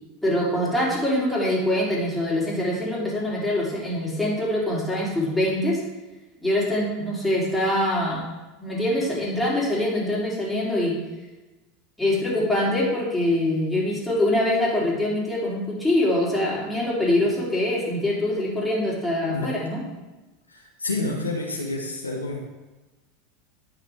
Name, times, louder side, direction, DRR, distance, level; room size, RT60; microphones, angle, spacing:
voice 1, 0.2-5.8 6.4-8.2 8.6-11.0 12.0-19.8, left 1 dB, 5° left, -6 dB, 3.1 m, -24 dB
voice 2, 20.5-22.5, left 2 dB, 90° left, -1 dB, 1.1 m, -29 dB
10.0 x 6.0 x 3.4 m, 1.1 s
figure-of-eight pair, 80°, 0 cm